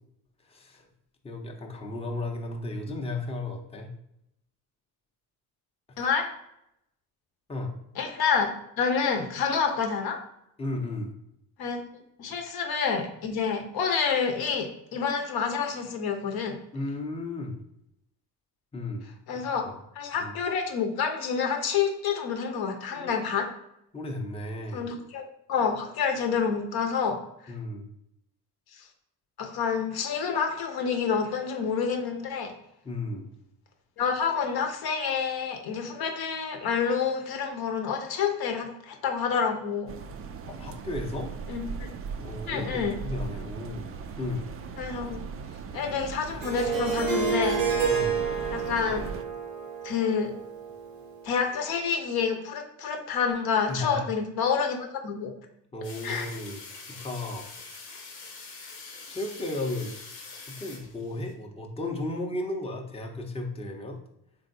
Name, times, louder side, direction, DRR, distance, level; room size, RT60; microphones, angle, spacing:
voice 1, 0.5-0.9 1.2-3.9 7.5-7.7 10.6-11.1 16.7-17.6 18.7-19.8 20.1-20.3 23.0-23.3 23.9-24.9 27.5-27.9 32.8-33.3 40.5-41.3 42.2-43.9 44.2-44.5 47.9-48.2 53.7-54.0 55.7-57.5 59.1-59.9 60.5-64.0, left 2 dB, 10° left, 1 dB, 0.7 m, -34 dB
voice 2, 6.0-6.3 8.0-10.2 11.6-11.8 12.2-16.6 19.3-19.6 20.0-23.5 24.7-27.5 28.7-28.8 29.4-32.5 34.0-39.9 41.5-41.9 42.5-43.0 44.8-45.3 45.7-47.6 48.5-49.0 49.8-50.3 51.2-55.3 56.0-56.4, left 6 dB, 50° left, 4 dB, 0.9 m, -28 dB
sound 1, 39.9-49.2, right 5 dB, 30° right, 0.4 m, -38 dB
Harp, 46.4-51.4, right 6 dB, 85° right, 0.8 m, -29 dB
sound 2, 55.8-61.3, left 4 dB, 80° left, 1.0 m, -44 dB
3.8 x 3.4 x 2.6 m, 0.80 s
hypercardioid pair, 50°, 48 cm